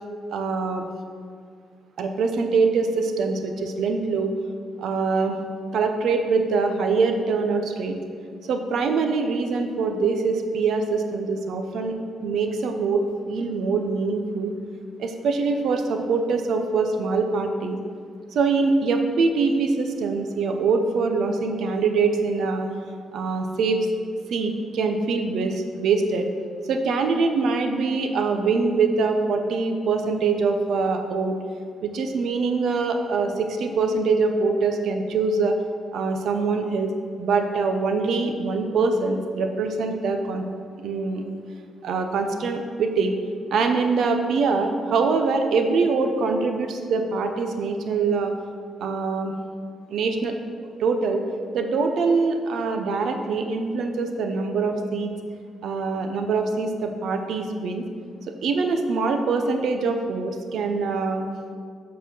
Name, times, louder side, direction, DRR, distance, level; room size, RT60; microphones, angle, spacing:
voice 1, 0.3-0.9 2.0-4.3 4.8-5.4 5.7-8.0 8.4-14.5 15.0-17.8 18.3-22.7 23.1-23.9 24.3-26.3 26.7-31.4 31.8-35.6 35.9-36.9 37.2-40.4 40.8-41.2 41.8-43.1 43.5-48.3 48.8-49.3 49.9-50.3 50.8-51.2 51.5-55.1 55.6-57.8 58.4-61.3, right 4 dB, 70° right, 5 dB, 0.7 m, -24 dB
8.2 x 4.2 x 6.1 m, 2.1 s
cardioid pair, 130°, 0 cm